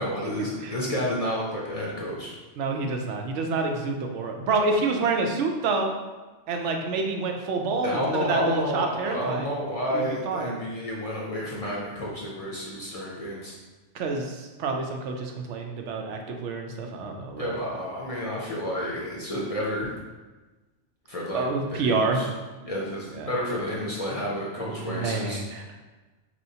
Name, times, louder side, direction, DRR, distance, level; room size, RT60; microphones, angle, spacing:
voice 1, 0.0-2.3 7.8-13.5 17.4-19.9 21.1-22.3 22.6-25.4, equal, 40° left, -5 dB, 0.5 m, -30 dB
voice 2, 2.6-5.9 6.5-9.5 9.9-10.7 13.9-17.6 21.3-22.2 23.1-23.3 24.6-25.6, right 3 dB, 85° right, 3 dB, 0.9 m, -28 dB
4.3 x 3.1 x 2.7 m, 1.2 s
omnidirectional pair, 1.2 m